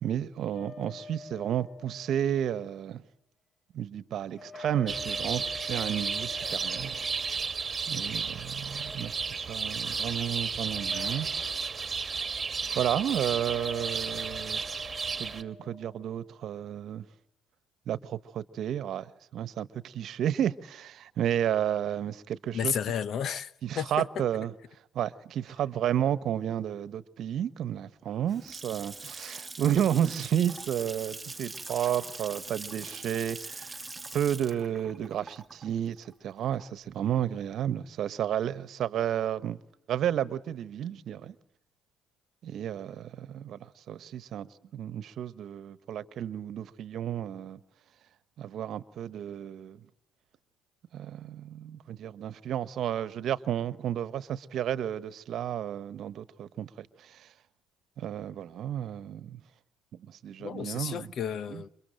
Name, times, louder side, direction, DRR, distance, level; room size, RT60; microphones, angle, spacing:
voice 1, 0.0-3.0 3.7-7.5 7.9-11.3 12.7-14.7 15.2-17.1 17.9-22.7 23.6-24.5 24.9-33.8 34.1-39.6 39.9-41.3 42.4-47.6 48.4-49.8 50.9-57.3 58.0-59.4 60.0-61.1 61.5-61.6, right 10 dB, 55° right, 1.3 m, -32 dB
sound 1, 0.5-2.6 4.4-8.1 8.6-9.6 10.7-11.9 13.3-16.1, left 4 dB, 25° left, 5.5 m, -46 dB
sound 2, 4.9-15.4, right 5 dB, 30° right, 1.7 m, -33 dB
voice 2, 22.5-24.2 60.4-61.7, left 8 dB, 55° left, 1.0 m, -32 dB
Water tap faucet / Sink (filling or washing) / Splash splatter, 28.1-36.9, right 3 dB, 15° right, 1.5 m, -43 dB
29.0 x 25.5 x 7.7 m
hypercardioid pair, 60°, 0 cm